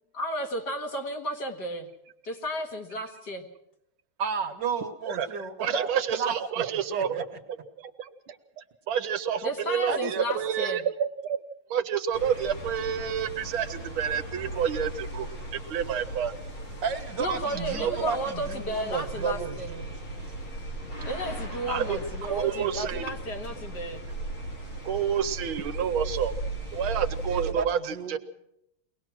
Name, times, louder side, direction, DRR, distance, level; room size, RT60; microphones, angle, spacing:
voice 1, 0.1-1.9 2.2-3.5 9.4-10.8 17.2-19.7 21.1-24.0, equal, 50° left, 3 dB, 2.3 m, -33 dB
voice 2, 4.2-6.3 6.9-7.2 9.9-10.0 16.8-19.9 27.3-28.2, right 6 dB, 55° right, 6 dB, 1.8 m, -32 dB
voice 3, 5.6-7.2 7.8-11.4 11.7-16.3 17.8-18.0 21.7-23.1 24.8-26.3 26.7-28.2, right 8 dB, 75° right, 9 dB, 1.7 m, -29 dB
sound 1, 12.1-27.5, right 2 dB, 75° left, 5.9 m, -37 dB
23.0 x 18.5 x 6.2 m, 0.82 s
omnidirectional pair, 2.4 m